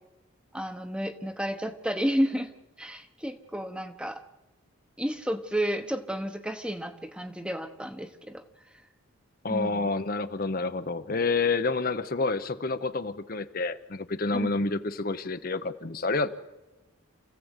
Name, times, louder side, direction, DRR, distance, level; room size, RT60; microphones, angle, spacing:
voice 1, 0.5-2.5 2.8-4.2 5.0-8.4 9.5-9.9 14.3-14.6, equal, 5° right, 8 dB, 1.0 m, -31 dB
voice 2, 9.4-16.3, left 3 dB, 45° left, 10 dB, 0.8 m, -28 dB
28.5 x 15.5 x 8.1 m, 1.1 s
head